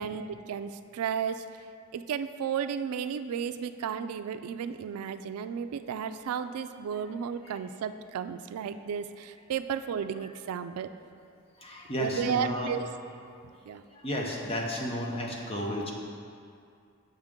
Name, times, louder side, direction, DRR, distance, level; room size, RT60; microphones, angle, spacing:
voice 1, 0.0-1.4 1.9-10.9 12.0-12.9 13.7-13.8, right 7 dB, 90° right, 10 dB, 0.3 m, -33 dB
voice 2, 11.6-12.7 13.9-15.9, equal, 25° left, 0 dB, 0.7 m, -33 dB
7.5 x 6.5 x 3.6 m, 2.4 s
head